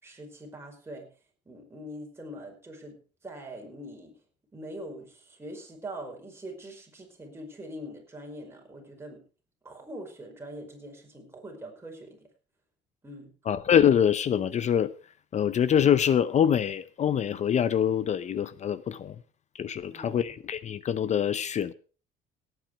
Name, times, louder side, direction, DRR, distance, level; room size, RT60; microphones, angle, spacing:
voice 1, 0.0-1.1 1.5-4.2 4.5-9.2 9.6-12.3 13.0-13.3 19.9-20.4, right 1 dB, 15° right, 5.0 m, -43 dB
voice 2, 13.5-14.9 15.3-19.1 19.6-21.7, left 9 dB, 40° left, 0.7 m, -24 dB
17.5 x 9.2 x 4.8 m
cardioid pair, 130°, 19 cm